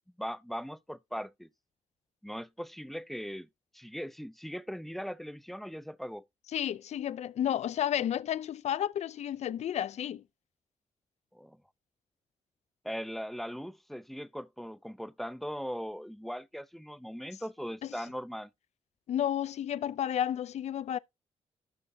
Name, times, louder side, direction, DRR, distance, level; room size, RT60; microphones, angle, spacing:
voice 1, 0.2-1.5 2.2-3.5 3.7-6.3 11.3-11.6 12.8-18.5, equal, ahead, 0.6 m, -39 dB
voice 2, 6.5-10.2 19.1-21.0, left 10 dB, 65° left, 0.5 m, -31 dB
12.5 x 6.2 x 2.7 m
cardioid pair, 85°, 12 cm